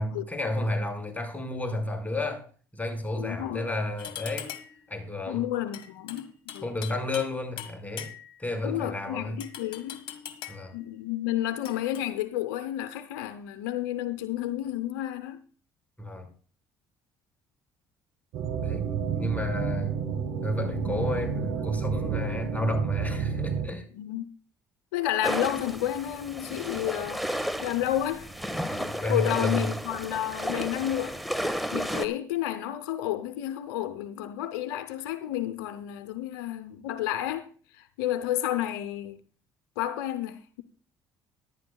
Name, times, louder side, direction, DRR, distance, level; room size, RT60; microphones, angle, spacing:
voice 1, 0.0-2.5 2.7-4.5 4.9-5.4 6.6-8.1 8.4-9.4 10.5-10.7 16.0-16.3 18.6-19.9 20.4-23.9 28.6-29.8, left 2 dB, 15° left, 5.3 m, -31 dB
voice 2, 3.1-3.7 5.3-6.7 8.6-10.0 10.7-15.4 23.9-24.2 24.9-27.2 27.6-28.3 29.1-31.2 31.7-37.5 37.7-39.2 39.8-40.6, left 12 dB, 85° left, 0.7 m, -31 dB
sound 1, 4.0-4.8 5.7-7.3 7.6-8.4 9.4-10.7 11.6-12.0, left 10 dB, 60° left, 1.6 m, -41 dB
sound 2, 18.3-23.7, right 7 dB, 80° right, 1.5 m, -30 dB
sound 3, 25.2-32.1, equal, ahead, 1.6 m, -33 dB
17.5 x 11.5 x 2.3 m
hypercardioid pair, 60°, 10 cm